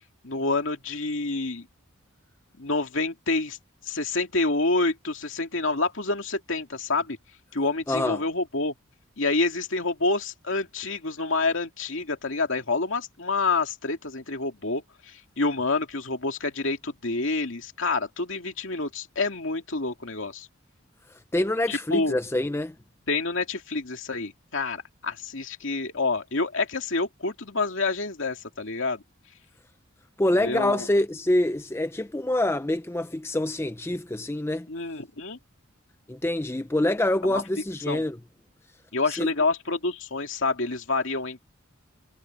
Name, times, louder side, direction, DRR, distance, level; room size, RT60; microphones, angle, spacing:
voice 1, 0.2-1.7 2.6-3.6 3.9-7.2 7.5-8.7 9.2-20.5 21.7-22.2 23.1-29.0 30.4-30.9 34.7-35.4 37.2-37.4 37.9-38.0 38.9-41.4, left 3 dB, 65° left, 2.4 m, -28 dB
voice 2, 7.9-8.2 21.1-22.7 30.2-34.7 36.1-38.2 39.1-39.3, left 1 dB, 10° left, 0.5 m, -26 dB
head